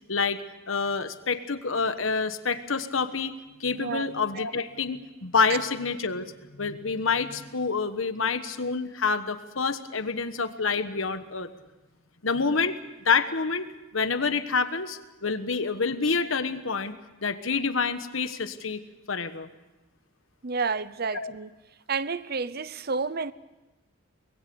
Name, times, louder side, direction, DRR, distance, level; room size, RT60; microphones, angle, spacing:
voice 1, 0.1-0.4 0.7-3.3 3.6-6.3 6.6-11.5 12.2-12.8 13.0-13.7 13.9-17.0 17.2-18.8 19.1-19.5 21.1-21.3, left 5 dB, 80° left, 1.3 m, -27 dB
voice 2, 3.7-4.1 20.4-21.5 21.9-23.3, right 4 dB, 50° right, 0.7 m, -30 dB
24.0 x 20.5 x 7.0 m
head